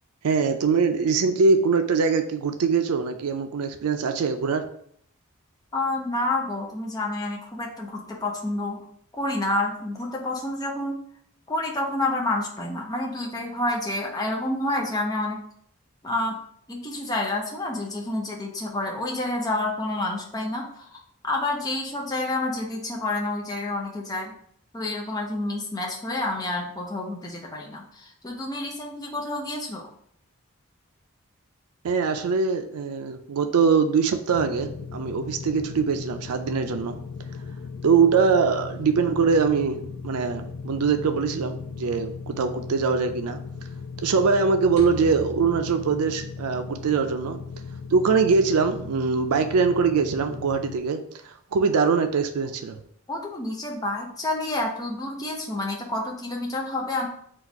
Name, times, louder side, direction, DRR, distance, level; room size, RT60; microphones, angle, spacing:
voice 1, 0.2-4.6 31.8-37.0 37.8-43.4 44.0-47.4 47.9-52.8, right 5 dB, 90° right, 7 dB, 0.4 m, -23 dB
voice 2, 5.7-8.8 9.1-11.0 11.5-15.4 16.0-16.3 16.7-24.3 24.7-29.9 53.1-57.1, left 2 dB, 15° left, -1 dB, 0.6 m, -29 dB
sound 1, 34.3-50.8, left 5 dB, 80° left, 0.4 m, -38 dB
sound 2, 44.8-47.0, right 3 dB, 30° right, 0.8 m, -42 dB
4.1 x 2.4 x 4.5 m, 0.65 s
head